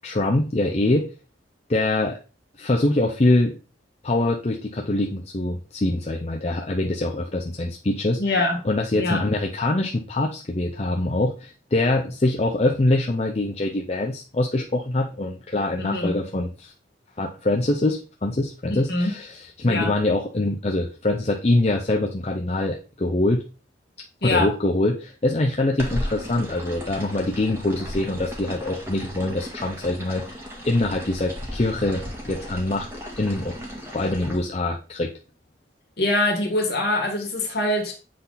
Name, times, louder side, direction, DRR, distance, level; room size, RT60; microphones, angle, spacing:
voice 1, 0.0-1.1 1.7-2.2 2.6-3.6 4.0-8.2 8.6-16.7 17.2-23.4 24.2-30.4 30.6-32.9 33.2-33.5 33.9-35.1, left 2 dB, 35° left, 1 dB, 0.6 m, -24 dB
voice 2, 8.2-8.6 8.9-9.2 15.8-16.2 18.7-19.1 19.6-19.9 24.2-24.5 36.0-37.9, left 2 dB, 60° left, 1 dB, 1.9 m, -23 dB
sound 1, 25.8-34.4, equal, 15° right, 1.7 m, -35 dB
7.7 x 3.9 x 4.1 m, 0.34 s
head